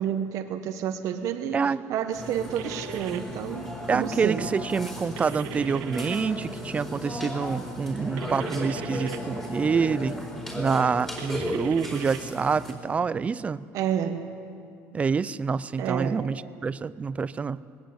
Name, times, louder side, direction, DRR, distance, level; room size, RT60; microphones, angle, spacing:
voice 1, 0.0-1.6 1.9-4.5 13.7-14.3 15.8-16.2, right 9 dB, 55° right, 6 dB, 1.1 m, -29 dB
Burping eructation, 2.1-12.7, left 1 dB, 10° left, 4.5 m, -35 dB
sound 1, 2.5-3.2 5.2-6.2 8.2-9.2 11.2-12.2, right 12 dB, 90° right, 1.2 m, -40 dB
voice 2, 3.9-10.2 10.5-13.6 14.9-17.6, right 5 dB, 20° right, 17 dB, 0.5 m, -27 dB
19.5 x 19.0 x 7.9 m, 2.6 s
cardioid pair, 135°, 6 cm